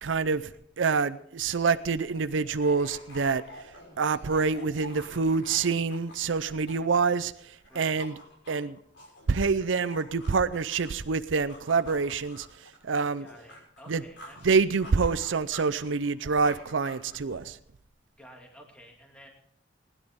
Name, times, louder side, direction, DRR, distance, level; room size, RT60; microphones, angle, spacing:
voice 1, 0.0-0.5 0.8-3.4 4.0-8.2 8.5-8.8 9.3-12.5 12.8-13.3 13.9-14.0 14.4-17.6, right 5 dB, 90° right, 13 dB, 0.6 m, -26 dB
sound 1, 1.4-7.3 7.6-11.1 11.5-14.5 14.8-17.6, left 1 dB, 85° left, 6.1 m, -48 dB
voice 2, 6.5-6.9 7.7-8.0 13.2-14.4 14.8-14.9 18.2-19.3, equal, 5° left, 0 dB, 2.3 m, -52 dB
20.0 x 11.0 x 3.6 m, 0.66 s
head